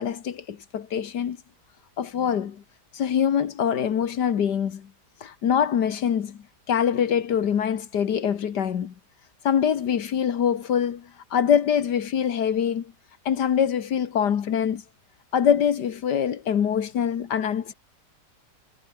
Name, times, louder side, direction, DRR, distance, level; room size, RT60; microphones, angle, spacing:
voice 1, 0.0-1.4 2.0-2.6 2.9-4.9 5.2-8.9 9.4-12.9 13.3-14.8 15.3-17.7, left 8 dB, 80° left, 1.9 m, -24 dB
omnidirectional pair, 1.8 m